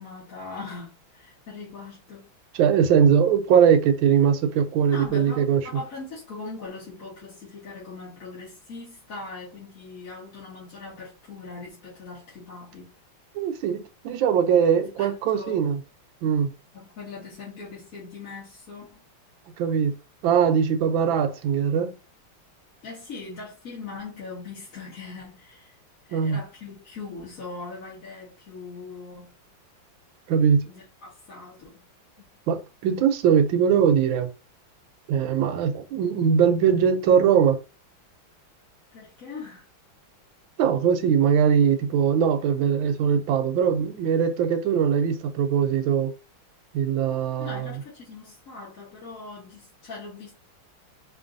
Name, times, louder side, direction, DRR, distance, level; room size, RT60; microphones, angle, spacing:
voice 1, 0.0-2.3 4.9-12.9 15.0-15.6 16.7-19.0 22.8-25.8 26.1-29.3 30.7-31.8 32.2-32.3 38.9-39.7 47.4-50.3, left 3 dB, 45° left, 1.9 m, -40 dB
voice 2, 2.5-5.6 13.3-15.8 16.2-16.5 19.6-19.9 20.2-22.0 26.1-26.4 30.3-30.6 32.5-34.3 35.1-37.6 40.6-46.1 46.7-47.7, right 7 dB, 75° right, 1.4 m, -21 dB
4.4 x 2.9 x 2.5 m
omnidirectional pair, 2.3 m